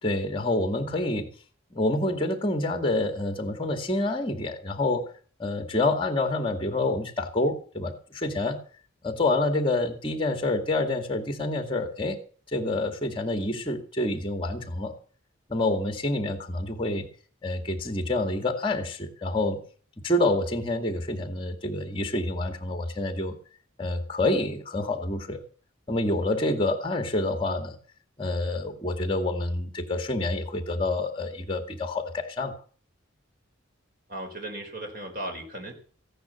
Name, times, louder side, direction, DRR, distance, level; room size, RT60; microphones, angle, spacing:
voice 1, 0.0-1.3 1.7-5.1 5.4-8.6 9.0-12.2 12.5-14.9 15.5-17.1 17.4-19.6 20.0-23.3 23.8-25.4 25.9-27.8 28.2-32.5, left 2 dB, 25° left, 6 dB, 2.1 m, -27 dB
voice 2, 34.1-35.7, right 1 dB, 45° right, 4 dB, 4.1 m, -36 dB
16.0 x 10.5 x 6.9 m, 0.43 s
head